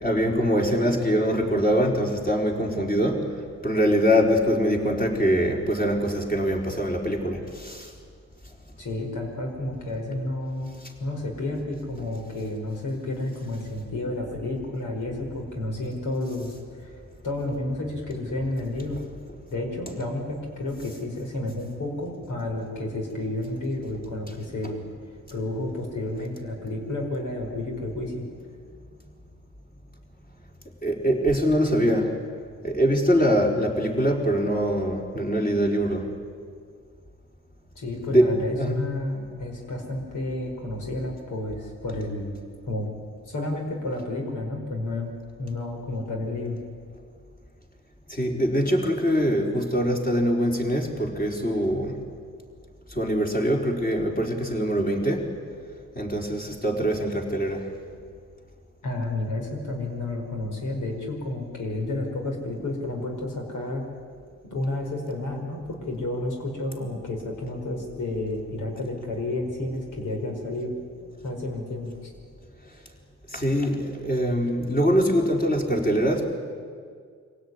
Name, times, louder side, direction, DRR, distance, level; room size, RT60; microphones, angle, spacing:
voice 1, 0.0-3.2 3.6-7.9 30.8-32.1 32.6-36.1 38.1-38.8 48.1-52.0 53.0-55.2 56.0-57.6 73.3-76.4, equal, 30° left, 0 dB, 4.4 m, -23 dB
voice 2, 8.8-10.7 11.0-17.0 17.2-19.0 19.5-24.8 25.3-28.2 37.7-42.4 42.7-42.9 43.3-45.1 45.4-46.6 58.8-63.8 64.4-70.7 71.2-72.1, left 2 dB, 85° left, 1 dB, 5.2 m, -31 dB
25.0 x 17.0 x 9.7 m, 2.1 s
cardioid pair, 85°, 30 cm